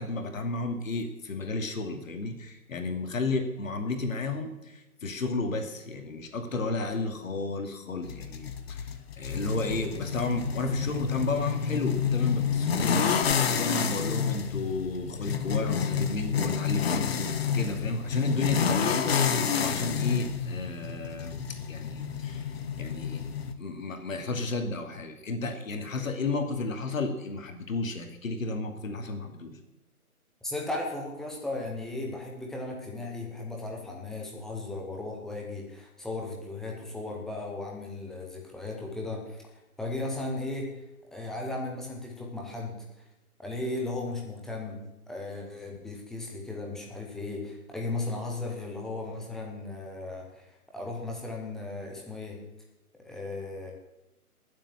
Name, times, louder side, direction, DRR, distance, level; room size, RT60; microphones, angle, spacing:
voice 1, 0.0-17.3 17.5-21.4 21.7-23.2 23.6-29.6, left 3 dB, 60° left, 6 dB, 2.6 m, -32 dB
sound 1, 8.0-23.5, left 7 dB, 40° left, 1.3 m, -29 dB
voice 2, 30.4-39.4 39.8-40.7 41.1-42.9 43.4-44.8 45.1-52.4 53.0-53.7, left 2 dB, ahead, -1 dB, 0.7 m, -36 dB
19.0 x 7.7 x 7.3 m, 0.93 s
figure-of-eight pair, 145°, 45 cm